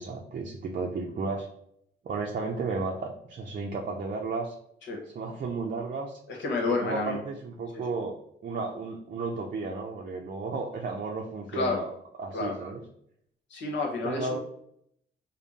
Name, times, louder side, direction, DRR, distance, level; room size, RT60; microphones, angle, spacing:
voice 1, 0.0-1.5 2.0-4.5 5.1-6.1 6.7-8.2 8.4-11.9 12.2-12.8 14.0-14.4, right 4 dB, 45° right, 0 dB, 0.5 m, -33 dB
voice 2, 6.3-7.2 7.7-7.8 11.5-11.8 12.3-12.5 13.5-14.4, left 3 dB, 65° left, 0 dB, 1.1 m, -29 dB
3.5 x 2.2 x 4.0 m, 0.71 s
cardioid pair, 90°, 20 cm